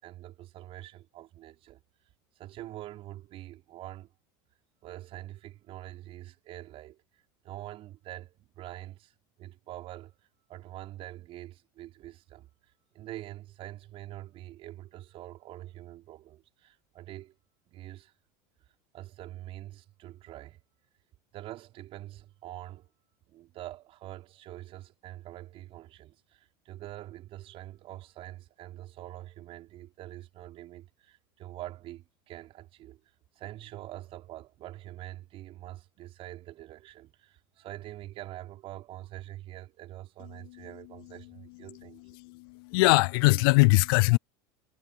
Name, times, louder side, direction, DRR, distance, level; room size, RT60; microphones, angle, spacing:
voice 1, 0.0-1.8 2.4-4.1 4.8-7.0 7.4-9.1 9.4-12.5 12.9-17.3 17.7-18.1 18.9-20.6 21.3-22.9 23.3-33.0 33.4-42.0, right 14 dB, 50° right, 5.4 m, -45 dB
voice 2, 42.2-44.2, left 27 dB, 70° left, 0.4 m, -21 dB
supercardioid pair, 105°, 12 cm